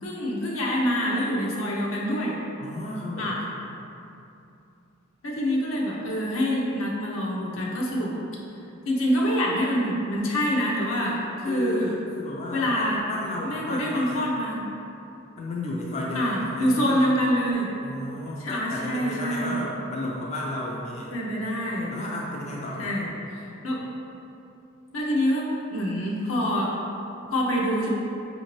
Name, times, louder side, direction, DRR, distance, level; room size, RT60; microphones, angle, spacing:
voice 1, 0.0-2.4 3.2-3.4 5.2-8.1 8.9-11.9 12.5-13.0 13.4-14.6 16.2-17.7 18.4-19.6 21.1-21.9 22.8-23.1 23.3-23.8 24.9-26.8 27.3-27.9, equal, 80° left, -3 dB, 0.7 m, -26 dB
voice 2, 2.6-3.4 11.5-14.3 15.4-17.0 17.8-21.1 21.9-22.9, left 1 dB, 35° left, -3 dB, 0.4 m, -33 dB
5.0 x 2.7 x 3.0 m, 2.7 s
head